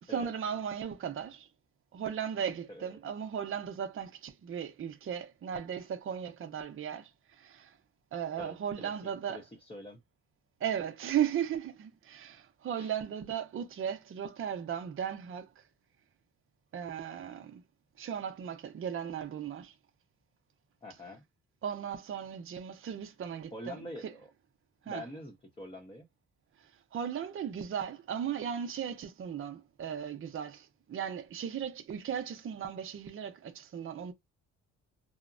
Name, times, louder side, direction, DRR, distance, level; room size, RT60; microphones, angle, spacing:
voice 1, 0.0-1.5 1.9-7.1 7.4-7.7 8.1-9.4 10.6-15.5 16.7-17.6 18.0-19.7 21.6-23.8 24.9-25.0 26.9-34.1, right 8 dB, 45° right, 0.6 m, -36 dB
voice 2, 8.4-10.0 12.7-12.9 20.8-21.2 23.5-24.3 24.8-26.1, left 1 dB, 15° left, 0.8 m, -46 dB
2.8 x 2.1 x 2.5 m
cardioid pair, 90°, 30 cm